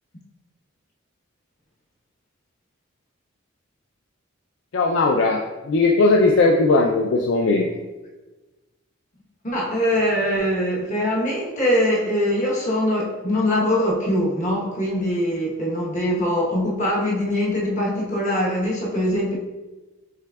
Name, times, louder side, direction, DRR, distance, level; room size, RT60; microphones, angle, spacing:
voice 1, 4.7-5.4 5.6-7.7, left 3 dB, 60° left, 1 dB, 0.4 m, -18 dB
voice 2, 9.4-19.3, left 1 dB, 35° left, -4 dB, 1.1 m, -22 dB
6.1 x 3.4 x 2.3 m, 1.1 s
head